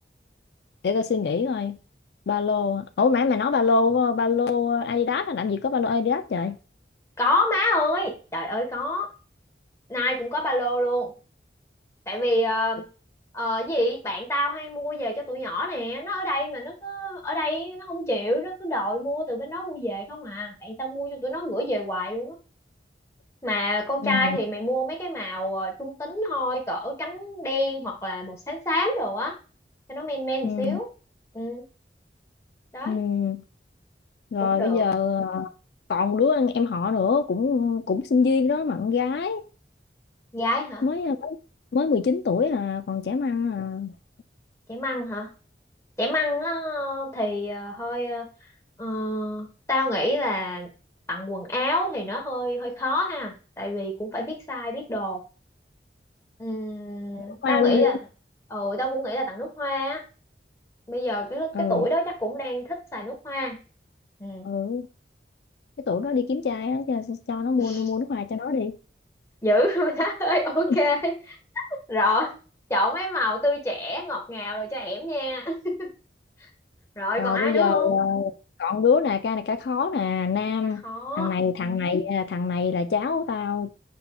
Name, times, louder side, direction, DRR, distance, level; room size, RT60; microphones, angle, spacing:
voice 1, 0.8-1.8 2.3-6.6 24.0-24.4 30.4-30.8 32.9-33.4 34.3-35.5 35.9-39.4 40.8-41.4 41.7-43.9 57.3-58.0 61.5-61.9 64.4-64.9 65.8-68.8 70.7-70.8 77.2-78.3 78.6-80.8 81.2-83.7, left 5 dB, 70° left, 0.4 m, -24 dB
voice 2, 7.2-9.1 9.9-11.1 12.1-12.8 13.3-22.3 23.4-29.3 29.9-30.9 31.3-31.6 32.7-33.0 34.4-34.9 40.3-40.8 44.7-45.3 46.0-48.3 48.8-50.7 51.1-55.2 56.4-58.0 58.5-60.0 60.9-63.6 64.2-64.5 67.6-67.8 69.4-71.4 71.9-72.3 72.7-75.9 77.0-78.0 80.6-81.4, left 1 dB, 15° left, 1.2 m, -27 dB
5.6 x 4.1 x 2.3 m
head